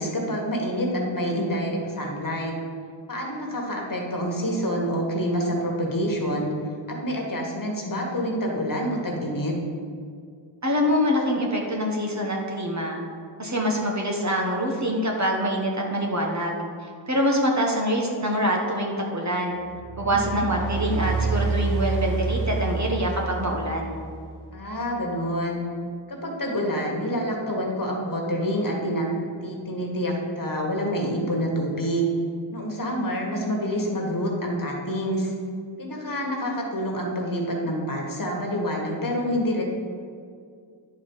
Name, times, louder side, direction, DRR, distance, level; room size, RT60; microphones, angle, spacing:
voice 1, 0.0-2.5 3.1-6.5 6.9-9.5 20.0-20.4 24.5-25.6 26.1-29.1 29.4-32.1 32.5-35.3 35.8-39.6, equal, 45° left, -1 dB, 1.7 m, -27 dB
voice 2, 10.6-13.0 13.4-16.6 17.1-19.6 20.0-24.0, equal, 35° right, 0 dB, 1.3 m, -25 dB
sound 1, 19.6-24.3, right 4 dB, 55° right, 1.4 m, -28 dB
10.0 x 4.5 x 5.6 m, 2.2 s
wide cardioid pair, 75°, 47 cm